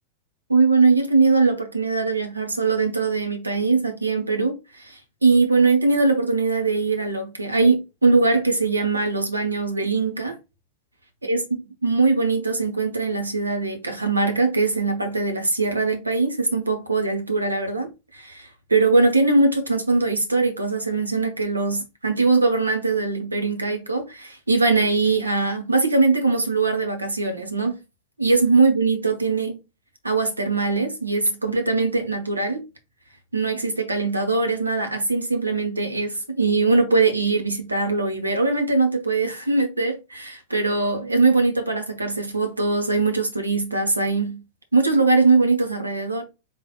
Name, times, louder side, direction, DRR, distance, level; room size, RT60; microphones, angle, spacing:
voice 1, 0.5-10.4 11.2-27.8 28.2-29.6 30.0-32.6 33.3-44.4 44.7-46.2, right 3 dB, 80° right, 1.0 m, -21 dB
4.0 x 3.4 x 2.3 m
figure-of-eight pair, 90°, 0 cm